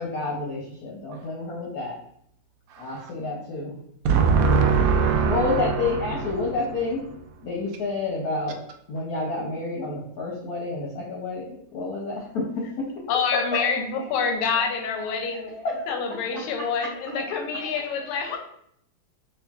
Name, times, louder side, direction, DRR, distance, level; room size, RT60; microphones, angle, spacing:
voice 1, 0.0-2.0 2.8-3.8 5.3-7.0 7.4-8.6 8.9-12.9 13.3-14.1 14.5-15.8 16.1-17.3 18.1-18.4, left 3 dB, 65° left, -2 dB, 0.9 m, -30 dB
voice 2, 2.7-3.1 4.0-6.5, right 5 dB, 75° right, 4 dB, 1.1 m, -22 dB
voice 3, 13.1-15.5 15.9-18.4, left 5 dB, 85° left, 3 dB, 1.5 m, -27 dB
5.4 x 2.3 x 2.3 m, 0.70 s
omnidirectional pair, 2.3 m